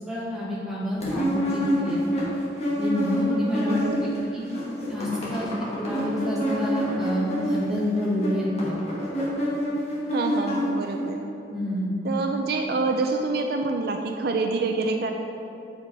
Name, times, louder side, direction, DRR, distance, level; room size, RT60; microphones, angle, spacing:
voice 1, 0.0-2.0 2.8-3.8 4.3-4.4 4.9-8.8 11.5-11.9, left 1 dB, 5° right, -7 dB, 1.6 m, -28 dB
sound 1, 1.0-4.2 4.4-11.1, equal, 35° left, 1.8 m, -27 dB
voice 2, 3.7-4.3 10.1-11.2 12.0-15.1, right 3 dB, 60° right, 4 dB, 0.4 m, -27 dB
8.0 x 4.9 x 4.7 m, 2.8 s
head